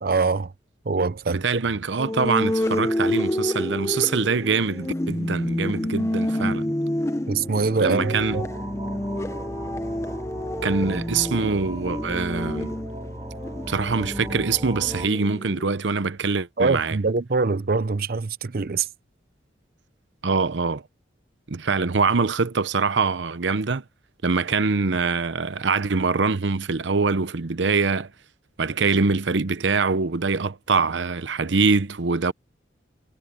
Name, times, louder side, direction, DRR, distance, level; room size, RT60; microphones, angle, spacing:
voice 1, 0.0-0.5 0.9-1.4 7.3-8.5 16.6-18.9, right 4 dB, 55° right, 0.6 m, -23 dB
voice 2, 1.3-6.6 7.8-8.4 10.6-12.7 13.7-17.0 20.2-20.8 21.5-23.8 24.2-28.1 28.6-32.3, right 4 dB, 85° right, 0.8 m, -24 dB
sound 1, 2.0-15.7, left 1 dB, 15° left, 0.7 m, -28 dB
sound 2, 8.2-15.1, right 1 dB, 25° right, 2.0 m, -36 dB
head